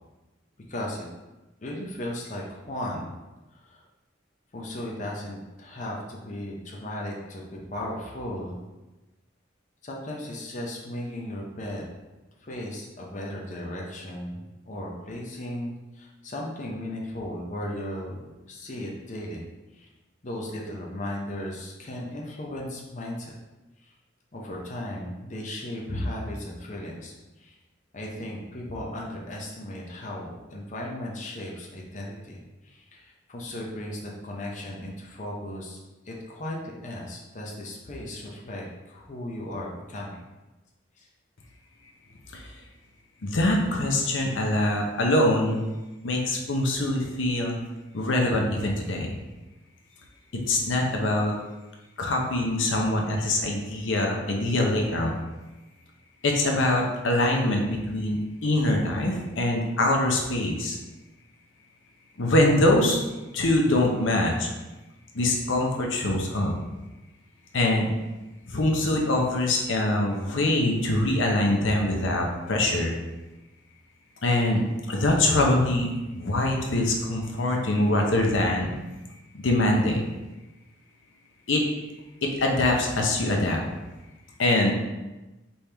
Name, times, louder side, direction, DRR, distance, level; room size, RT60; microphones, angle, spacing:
voice 1, 0.7-1.1 1.6-3.1 4.5-8.6 9.8-11.9 12.4-14.4 14.7-18.2 18.5-19.4 20.2-23.3 24.3-27.1 27.4-27.5 27.9-32.4 32.7-35.8 36.1-40.2, left 1 dB, 40° left, -2 dB, 0.7 m, -36 dB
voice 2, 43.2-45.6 46.0-47.5 47.9-49.1 50.3-51.3 52.0-55.1 56.2-60.8 62.2-63.0 63.3-64.5 65.1-66.5 67.5-67.9 68.5-73.0 74.2-74.6 74.9-75.9 76.1-78.7 79.3-80.0 81.5-81.6 82.2-83.6 84.4-84.7, left 1 dB, 80° left, 0 dB, 0.7 m, -24 dB
4.3 x 3.5 x 3.3 m, 1.1 s
head